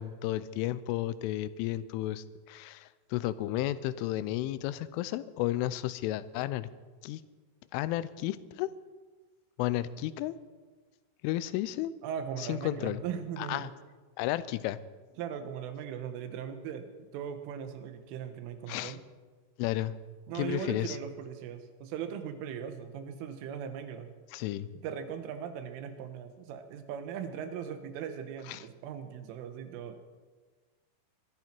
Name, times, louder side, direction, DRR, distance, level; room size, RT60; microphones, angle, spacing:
voice 1, 0.0-6.7 7.0-7.2 7.7-8.7 9.6-10.4 11.2-11.9 12.4-13.0 13.4-13.7 14.2-14.8 18.7-19.0 19.6-20.0 20.3-21.0 24.3-24.7 28.5-28.6, left 14 dB, 85° left, 16 dB, 3.1 m, -33 dB
voice 2, 12.0-13.7 15.2-19.0 20.3-24.1 24.8-30.0, right 8 dB, 85° right, 8 dB, 3.7 m, -39 dB
22.0 x 13.5 x 4.5 m, 1.4 s
omnidirectional pair, 5.6 m